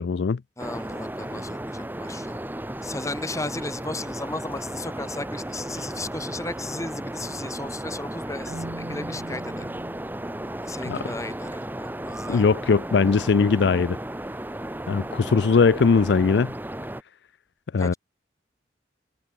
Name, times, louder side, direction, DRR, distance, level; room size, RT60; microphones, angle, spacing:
voice 1, 0.0-0.4 10.8-11.0 12.3-14.0 14.9-16.5 17.7-17.9, left 5 dB, 75° left, 0.4 m, -20 dB
voice 2, 0.6-2.4 2.8-9.7 10.6-12.4 17.8-18.0, left 2 dB, 20° left, 4.1 m, -35 dB
sound 1, 0.6-17.0, right 1 dB, 10° right, 1.2 m, -34 dB
Marimba xylophone, 8.5-11.4, right 1 dB, 60° right, 1.7 m, -42 dB
head